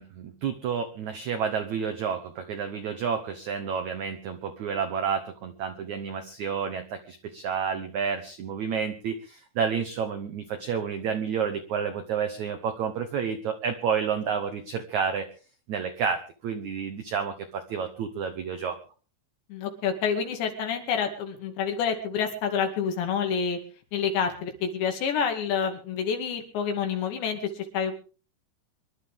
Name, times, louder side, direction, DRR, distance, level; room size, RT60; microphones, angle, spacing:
voice 1, 0.0-15.3 15.7-18.8, right 6 dB, 80° right, 7 dB, 1.6 m, -30 dB
voice 2, 19.5-23.6 23.9-27.9, left 6 dB, 80° left, 4 dB, 4.5 m, -28 dB
25.0 x 12.0 x 3.6 m, 0.36 s
omnidirectional pair, 5.0 m